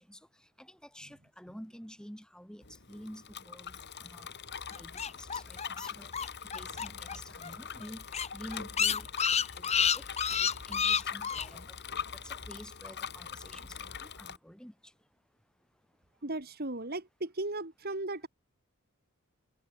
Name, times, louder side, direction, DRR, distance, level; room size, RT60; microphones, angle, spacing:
voice 1, 0.0-4.4 4.7-6.1 6.5-8.1 8.3-9.1 9.3-10.1 10.4-11.8 12.1-14.9, equal, 5° left, 5.2 m, -49 dB
Bicycle, 2.6-14.4, left 7 dB, 50° left, 3.6 m, -43 dB
sound 1, 4.7-7.2 7.4-7.5 7.8-7.9 8.1-11.5, left 7 dB, 30° left, 1.3 m, -29 dB
voice 2, 16.2-18.3, right 2 dB, 45° right, 2.6 m, -36 dB
head